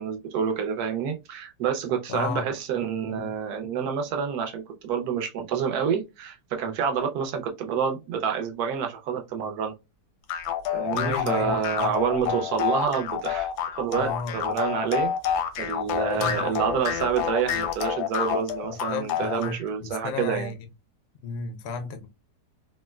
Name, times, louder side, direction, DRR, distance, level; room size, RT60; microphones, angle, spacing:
voice 1, 0.0-9.7 10.7-15.1 15.6-20.5, right 7 dB, 70° right, 1.1 m, -28 dB
voice 2, 2.1-2.5 3.1-3.3 3.6-3.7 10.9-11.9 12.2-12.4 14.0-14.4 16.1-16.6 18.6-20.5 21.2-22.1, left 4 dB, 70° left, 0.6 m, -33 dB
sound 1, 10.3-19.6, left 9 dB, 85° left, 1.2 m, -28 dB
3.6 x 2.1 x 2.2 m
omnidirectional pair, 1.8 m